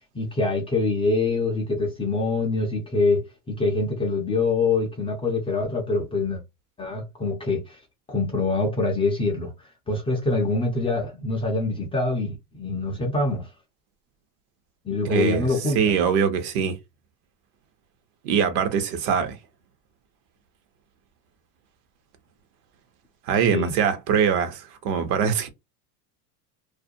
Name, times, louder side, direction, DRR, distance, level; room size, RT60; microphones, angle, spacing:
voice 1, 0.1-6.4 6.8-7.8 8.1-9.5 9.9-13.5 14.8-16.0 23.5-23.7, left 3 dB, 15° left, 0.3 m, -25 dB
voice 2, 15.0-16.8 18.2-19.4 23.3-25.5, right 7 dB, 70° right, 0.9 m, -23 dB
2.4 x 2.2 x 2.6 m
supercardioid pair, 120°, 47 cm